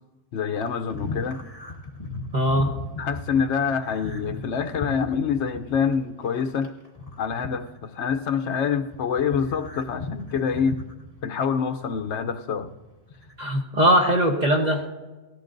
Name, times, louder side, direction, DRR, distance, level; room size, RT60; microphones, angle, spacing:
voice 1, 0.3-1.4 3.0-6.7 7.2-10.8 11.2-12.7, left 6 dB, 70° left, 8 dB, 1.0 m, -26 dB
sound 1, 0.5-8.3 8.6-12.2 12.5-13.4, left 2 dB, 30° left, 1.8 m, -37 dB
voice 2, 2.3-2.7 13.4-14.9, equal, 40° right, 1 dB, 1.2 m, -20 dB
18.0 x 15.0 x 2.6 m, 1.2 s
omnidirectional pair, 1.3 m